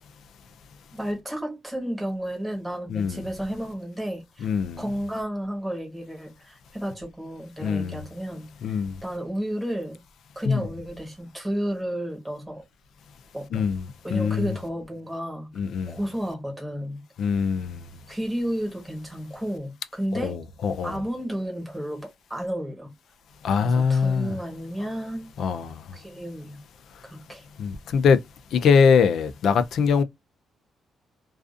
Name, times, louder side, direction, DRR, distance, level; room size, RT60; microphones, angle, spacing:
voice 1, 0.9-4.5 4.8-10.0 10.3-12.6 13.3-13.7 14.0-15.5 15.9-17.0 18.1-20.4 20.8-22.9 23.5-25.3 25.9-26.6 27.0-27.4, equal, 5° right, 1.1 m, -32 dB
voice 2, 4.4-4.8 7.6-8.0 8.6-8.9 10.5-10.6 13.5-13.8 14.1-14.5 15.6-16.0 17.2-17.9 20.1-21.0 23.4-24.3 25.4-25.8 27.6-28.2 28.5-30.0, left 6 dB, 60° left, 0.4 m, -22 dB
2.4 x 2.4 x 2.4 m
cardioid pair, 170°, 0 cm